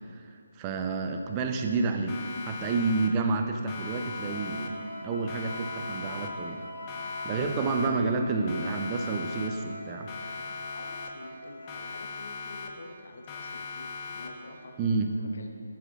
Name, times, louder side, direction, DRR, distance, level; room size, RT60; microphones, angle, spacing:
voice 1, 0.1-4.8 5.0-6.6 7.2-10.4 14.8-15.1, right 3 dB, 20° right, 4 dB, 0.5 m, -29 dB
Siren, 2.1-3.4 3.7-5.0 5.3-6.6 6.9-8.2 8.5-9.8 10.1-11.4 11.7-13.0 13.3-14.6, left 4 dB, 25° left, 0.7 m, -40 dB
Wind instrument woodwind instrument, 3.7-7.3, left 1 dB, 40° right, 1.6 m, -46 dB
Wind instrument woodwind instrument 2, 4.3-11.9, left 1 dB, 90° left, 0.4 m, -43 dB
voice 2, 10.7-14.8 15.1-15.5, left 2 dB, 60° left, 3 dB, 0.9 m, -47 dB
9.9 x 8.7 x 2.4 m, 2.5 s
figure-of-eight pair, 155°, 0 cm